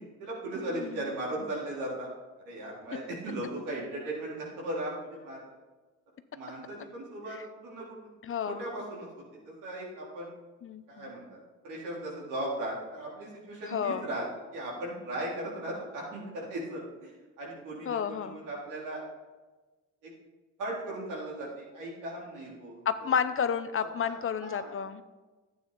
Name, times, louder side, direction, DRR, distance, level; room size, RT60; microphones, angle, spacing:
voice 1, 0.2-2.1 2.4-5.5 6.3-8.1 8.5-9.1 9.3-10.3 10.9-11.4 11.6-14.3 14.5-19.0 20.0-20.1 20.6-22.8 24.0-24.8, right 1 dB, 90° right, -4 dB, 3.9 m, -37 dB
voice 2, 8.2-8.6 10.6-11.1 13.7-14.1 17.8-18.4 22.9-25.0, left 7 dB, 45° left, 11 dB, 0.7 m, -31 dB
11.5 x 8.9 x 4.1 m, 1.2 s
cardioid pair, 90°, 30 cm